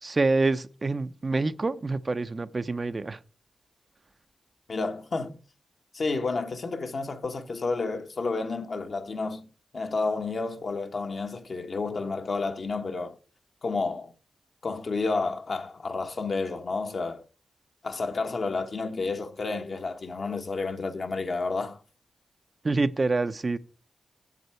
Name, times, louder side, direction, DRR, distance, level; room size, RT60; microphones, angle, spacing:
voice 1, 0.0-3.2 22.6-23.6, right 3 dB, 40° right, 0.6 m, -26 dB
voice 2, 4.7-5.4 5.9-9.5 9.7-13.2 13.6-14.1 14.6-17.2 17.8-21.8, left 3 dB, 60° left, 1.3 m, -30 dB
8.3 x 7.4 x 4.5 m
cardioid pair, 50°, 0 cm